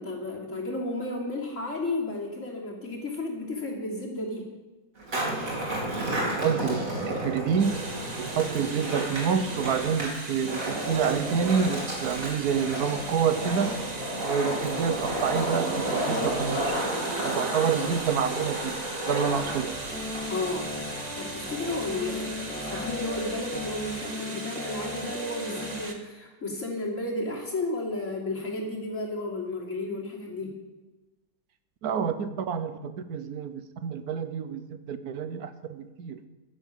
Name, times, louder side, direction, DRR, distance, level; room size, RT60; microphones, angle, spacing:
voice 1, 0.0-4.5 20.3-20.8 21.2-30.5, left 2 dB, 50° left, -2 dB, 3.4 m, -33 dB
Skateboard, 5.0-23.6, right 1 dB, 60° right, 3.4 m, -32 dB
voice 2, 6.3-7.8 8.2-13.8 14.2-16.8 17.2-19.8 31.8-36.2, right 7 dB, 75° right, 10 dB, 1.4 m, -28 dB
sound 1, 7.6-25.9, right 2 dB, 25° right, 1.5 m, -39 dB
sound 2, 19.4-25.8, left 1 dB, 5° left, 2.2 m, -38 dB
12.0 x 11.0 x 7.4 m, 1.1 s
omnidirectional pair, 1.6 m